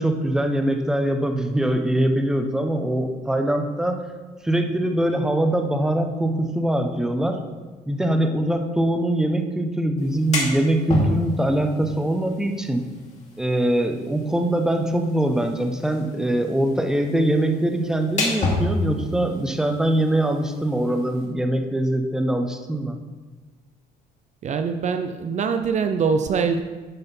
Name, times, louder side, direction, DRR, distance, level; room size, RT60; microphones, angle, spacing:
voice 1, 0.0-4.1 4.4-7.4 7.9-12.8 13.4-23.0, right 1 dB, 5° right, 5 dB, 0.8 m, -23 dB
sound 1, 10.0-21.3, left 2 dB, 45° left, 2.3 m, -31 dB
voice 2, 24.4-26.6, right 5 dB, 45° right, 7 dB, 0.5 m, -23 dB
11.0 x 4.2 x 5.4 m, 1.3 s
cardioid pair, 110°, 17 cm